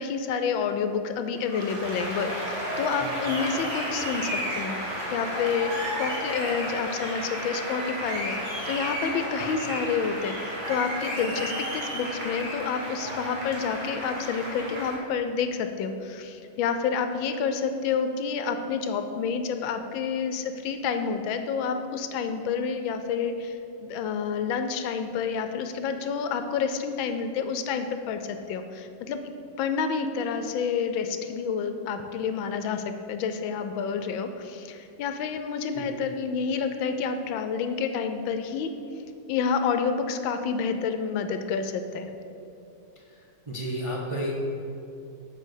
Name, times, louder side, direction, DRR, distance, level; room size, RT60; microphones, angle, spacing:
voice 1, 0.0-8.4 8.7-29.3 29.6-38.7 39.3-42.1, left 6 dB, 80° left, 8 dB, 1.3 m, -29 dB
Applause, 1.3-15.0, equal, 60° right, 2.4 m, -32 dB
voice 2, 3.0-3.4 9.4-9.5 35.7-35.9 42.9-44.3, equal, 35° right, -4 dB, 0.5 m, -34 dB
7.6 x 5.2 x 6.4 m, 2.7 s
omnidirectional pair, 2.2 m